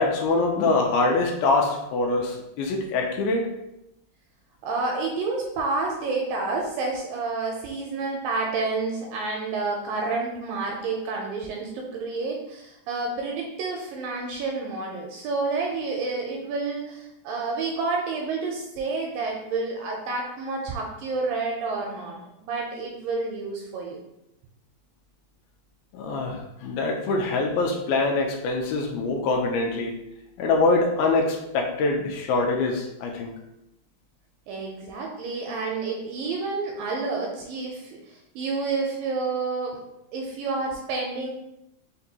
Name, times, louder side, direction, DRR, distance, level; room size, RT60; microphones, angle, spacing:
voice 1, 0.0-3.5 25.9-29.9 30.4-33.3, left 3 dB, 85° left, 1 dB, 2.3 m, -24 dB
voice 2, 4.6-24.0 34.5-39.8 40.1-41.3, right 3 dB, 80° right, 0 dB, 2.0 m, -29 dB
5.8 x 2.2 x 2.7 m, 0.87 s
omnidirectional pair, 4.3 m